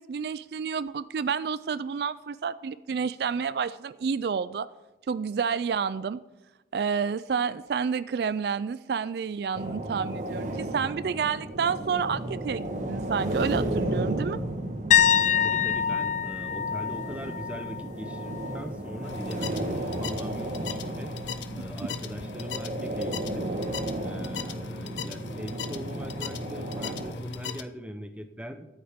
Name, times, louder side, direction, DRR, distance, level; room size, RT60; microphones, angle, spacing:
voice 1, 0.0-4.7 5.1-6.2 6.7-14.4, right 6 dB, 60° right, 16 dB, 0.3 m, -29 dB
sound 1, 9.5-27.1, right 1 dB, 45° right, 1.3 m, -34 dB
sound 2, 14.9-18.7 19.0-19.3 22.2-22.3, left 9 dB, 40° left, 0.3 m, -26 dB
voice 2, 15.4-21.1 21.5-23.5 24.0-28.7, equal, 5° right, 7 dB, 0.8 m, -41 dB
sound 3, 19.0-27.6, left 5 dB, 85° left, 0.7 m, -38 dB
21.5 x 8.7 x 3.6 m, 1.0 s
head